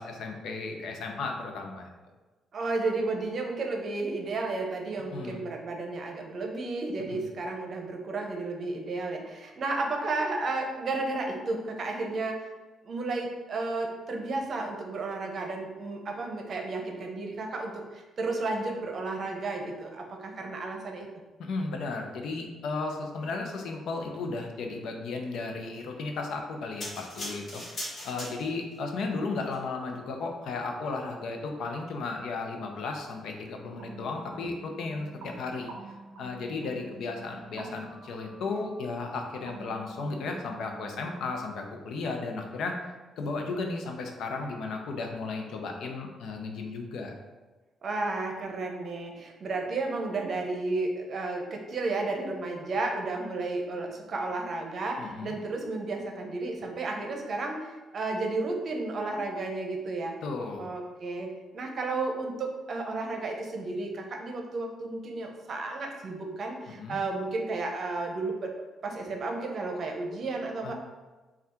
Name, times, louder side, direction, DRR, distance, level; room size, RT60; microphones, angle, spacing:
voice 1, 0.0-1.9 5.1-5.4 7.1-7.2 21.4-35.7 36.2-42.8 43.2-47.1 55.0-55.3 60.2-60.7 66.8-67.0 70.6-70.7, left 3 dB, 75° left, 3 dB, 0.6 m, -34 dB
voice 2, 2.5-12.5 12.9-21.1 47.8-60.1 60.6-68.5 68.8-70.7, right 3 dB, 50° right, 2 dB, 0.7 m, -32 dB
sound 1, 26.8-28.8 29.4-29.6, left 1 dB, 40° left, 1.3 m, -39 dB
sound 2, 33.8-41.4, right 3 dB, 85° right, 0.4 m, -48 dB
3.4 x 2.4 x 4.3 m, 1.2 s
cardioid pair, 90°, 0 cm